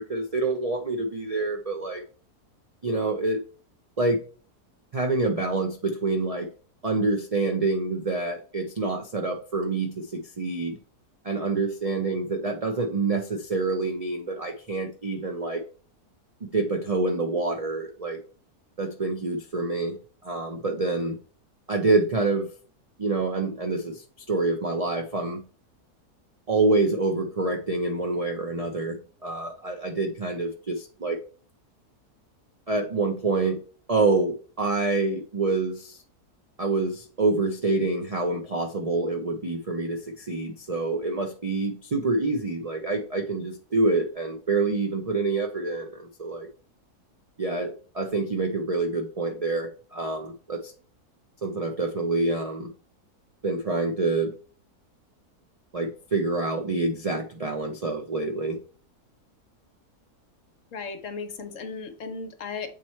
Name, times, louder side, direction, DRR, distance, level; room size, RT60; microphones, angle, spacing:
voice 1, 0.0-2.0 2.8-3.4 4.0-4.2 4.9-6.5 6.8-10.8 11.2-15.6 16.4-18.2 18.8-20.0 20.2-21.2 21.7-22.5 23.0-25.4 26.5-31.2 32.7-33.6 33.9-36.0 36.6-46.5 47.4-50.7 51.4-52.7 53.4-54.3 55.7-58.6, right 3 dB, 65° right, 3 dB, 0.3 m, -27 dB
voice 2, 60.7-62.7, left 4 dB, 60° left, 7 dB, 1.1 m, -35 dB
7.4 x 3.2 x 4.3 m, 0.39 s
omnidirectional pair, 1.7 m